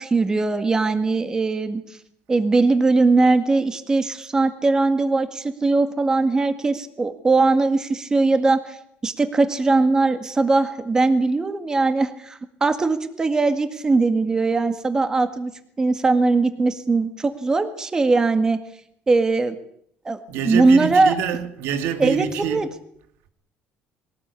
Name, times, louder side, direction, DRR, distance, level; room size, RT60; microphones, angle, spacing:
voice 1, 0.0-1.8 2.3-8.8 9.0-15.5 15.8-18.6 19.1-19.6 20.1-20.2 20.5-21.1 22.0-22.7, right 3 dB, 15° right, 1.9 m, -20 dB
voice 2, 20.3-22.7, right 9 dB, 90° right, 2.5 m, -26 dB
22.5 x 18.5 x 8.4 m
cardioid pair, 160°, 4 cm